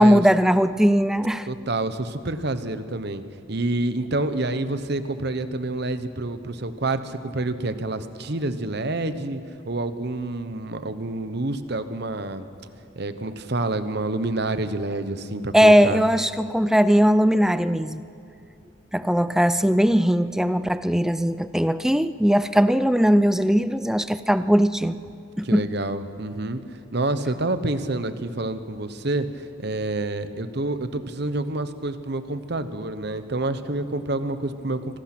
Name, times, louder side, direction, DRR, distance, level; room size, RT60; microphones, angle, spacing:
voice 1, 0.0-1.5 15.5-18.0 18.9-25.0 25.4-25.7, equal, ahead, 13 dB, 0.4 m, -19 dB
voice 2, 1.5-3.2 3.5-9.4 9.7-12.5 12.9-16.0 25.4-26.6 26.9-35.0, right 2 dB, 55° right, 11 dB, 1.0 m, -28 dB
25.5 x 18.0 x 6.0 m, 2.7 s
head